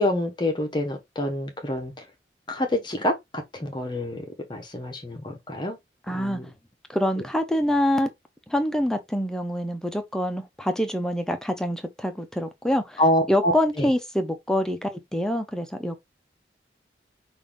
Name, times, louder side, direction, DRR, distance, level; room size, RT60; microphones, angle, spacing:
voice 1, 0.0-1.9 2.5-4.2 4.5-5.8 6.1-6.5 13.0-13.9, left 1 dB, 25° left, 0.9 m, -26 dB
voice 2, 6.1-6.4 6.9-8.1 8.5-13.0 13.3-15.9, equal, 5° left, 0.6 m, -25 dB
5.6 x 2.6 x 3.5 m
head